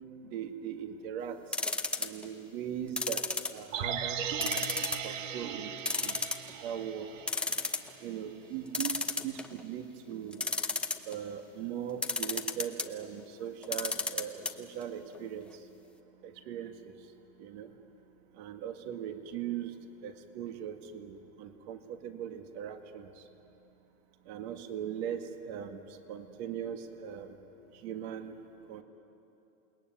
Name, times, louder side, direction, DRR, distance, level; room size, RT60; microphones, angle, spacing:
voice 1, 0.2-1.4 2.0-5.7 6.0-6.2 6.6-7.1 8.0-10.4 11.1-15.7 16.2-17.1 17.4-17.7 18.4-19.7 20.0-23.1 24.3-27.4 27.7-28.4 28.7-28.8, right 9 dB, 50° right, 6 dB, 1.9 m, -40 dB
sound 1, 1.5-2.3 3.0-3.9 4.4-5.1 5.4-5.5 5.9-6.7 7.0-7.1 7.3-7.9 8.7-9.6 10.3-11.2 12.0-12.9 13.6-14.5 14.8-14.9 15.2-15.3, left 3 dB, 5° left, 0.6 m, -32 dB
sound 2, 3.7-7.9 8.2-8.3, right 8 dB, 65° right, 1.6 m, -37 dB
28.5 x 20.0 x 9.3 m, 2.9 s
supercardioid pair, 155°, 41 cm